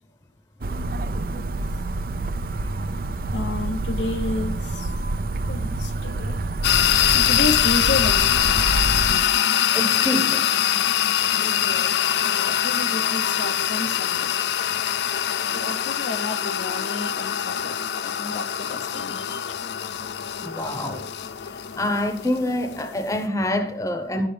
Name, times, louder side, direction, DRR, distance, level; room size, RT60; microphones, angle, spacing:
sound 1, 0.6-9.2, right 2 dB, 55° right, 0.5 m, -27 dB
voice 1, 3.3-4.9 5.5-6.4 7.1-8.4 11.4-14.3 15.5-19.4, left 2 dB, 90° left, 0.7 m, -31 dB
sound 2, 6.6-23.2, left 10 dB, 70° left, 0.4 m, -23 dB
voice 2, 9.7-10.5 20.4-21.1 21.4-24.3, left 1 dB, 20° left, 0.8 m, -26 dB
11.0 x 8.5 x 3.3 m
head